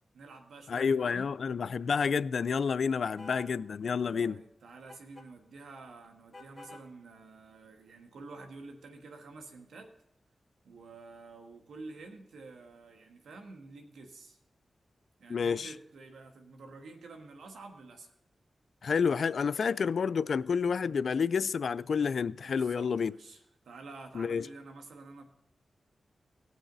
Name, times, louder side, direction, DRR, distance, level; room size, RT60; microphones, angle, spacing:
voice 1, 0.1-1.3 4.1-9.9 10.6-14.4 15.2-18.1 22.4-25.2, right 3 dB, 90° right, 1.6 m, -49 dB
voice 2, 0.7-4.4 15.3-15.7 18.8-23.1 24.1-24.5, left 6 dB, 75° left, 0.3 m, -29 dB
sound 1, 3.2-3.6 4.9-5.3 6.3-6.9, left 2 dB, 25° left, 2.2 m, -48 dB
18.0 x 6.3 x 3.9 m
cardioid pair, 45°, 0 cm